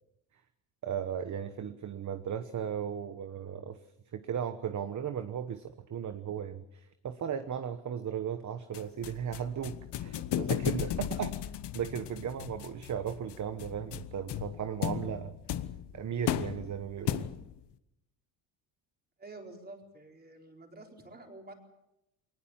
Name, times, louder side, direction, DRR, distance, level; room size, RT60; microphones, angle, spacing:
voice 1, 0.8-3.8 4.1-11.4 11.7-15.3 15.9-17.3, right 8 dB, 40° right, 10 dB, 1.1 m, -36 dB
sound 1, 8.7-17.6, left 11 dB, 60° left, 1.2 m, -36 dB
voice 2, 19.2-21.5, right 2 dB, 20° right, 2 dB, 4.3 m, -49 dB
22.0 x 19.5 x 7.3 m, 0.88 s
cardioid pair, 125°, 46 cm